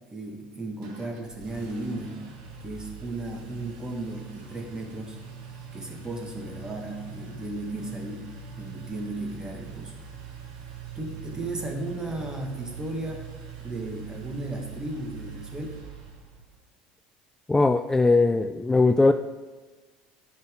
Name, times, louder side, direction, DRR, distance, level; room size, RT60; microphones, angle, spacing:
voice 1, 0.1-2.2 2.6-5.2 5.7-8.3 8.6-9.9 11.0-13.3 13.6-15.7, right 2 dB, 20° right, 2 dB, 1.8 m, -35 dB
Engine, 0.8-16.5, right 6 dB, 80° right, 1.5 m, -42 dB
voice 2, 17.5-19.1, left 3 dB, 10° left, 8 dB, 0.3 m, -20 dB
10.0 x 5.8 x 3.8 m, 1.3 s
hypercardioid pair, 80°, 4 cm